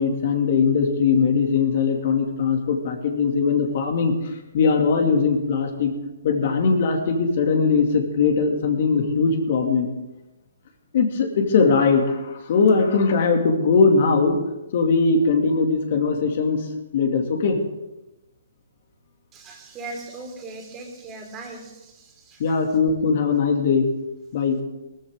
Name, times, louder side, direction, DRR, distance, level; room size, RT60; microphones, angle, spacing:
voice 1, 0.0-4.1 4.5-5.9 6.2-9.9 10.9-14.4 14.7-16.7 16.9-17.6 22.4-23.9 24.3-24.6, left 5 dB, 55° left, 3 dB, 2.5 m, -20 dB
voice 2, 19.3-22.6, right 3 dB, 20° right, 2 dB, 3.1 m, -39 dB
19.0 x 14.0 x 3.8 m, 1.0 s
hypercardioid pair, 145°, 0 cm